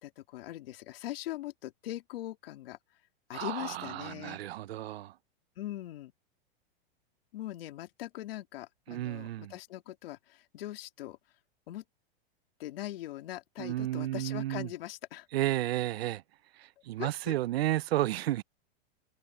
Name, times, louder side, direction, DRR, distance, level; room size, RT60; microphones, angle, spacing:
voice 1, 0.0-2.8 3.3-4.4 5.6-6.1 7.3-11.2 11.7-11.8 12.6-15.3 17.0-17.3, left 14 dB, 70° left, 3.0 m, -41 dB
voice 2, 3.3-5.1 8.9-9.5 13.6-14.7 15.3-16.2 16.6-18.4, right 14 dB, 80° right, 0.7 m, -32 dB
supercardioid pair, 150°, 30 cm